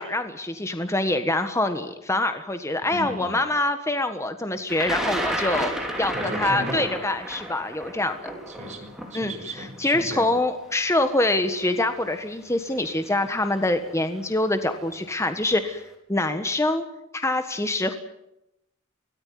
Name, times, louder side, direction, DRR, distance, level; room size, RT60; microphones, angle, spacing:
voice 1, 0.0-5.7 6.0-8.3 9.1-9.3 9.8-16.8 17.1-17.9, left 2 dB, 15° left, 8 dB, 1.4 m, -25 dB
voice 2, 2.9-3.4 6.1-6.8 8.5-10.3, equal, 35° right, 4 dB, 6.2 m, -35 dB
Thunder, 4.7-10.7 11.6-11.7 12.9-13.1 13.4-13.9, right 1 dB, ahead, 5.0 m, -31 dB
24.0 x 18.0 x 9.4 m, 0.84 s
head